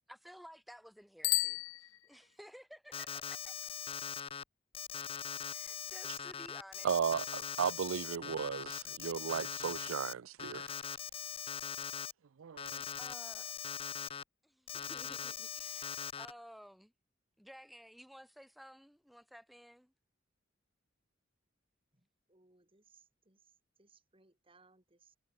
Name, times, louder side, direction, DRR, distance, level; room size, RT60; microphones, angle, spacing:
voice 1, 0.1-3.5 5.5-7.0 13.0-13.5 14.4-16.9 17.4-19.9, equal, ahead, 5.5 m, -55 dB
Bicycle bell, 1.2-2.5, left 19 dB, 85° left, 0.5 m, -35 dB
Alarm, 2.9-4.4 4.7-10.1 10.4-12.1 12.6-14.2 14.7-16.3, left 8 dB, 30° left, 0.5 m, -41 dB
voice 2, 6.8-10.7 12.4-12.8, right 7 dB, 85° right, 0.4 m, -35 dB
voice 3, 22.3-23.5 23.8-25.2, right 4 dB, 25° right, 3.4 m, -67 dB
head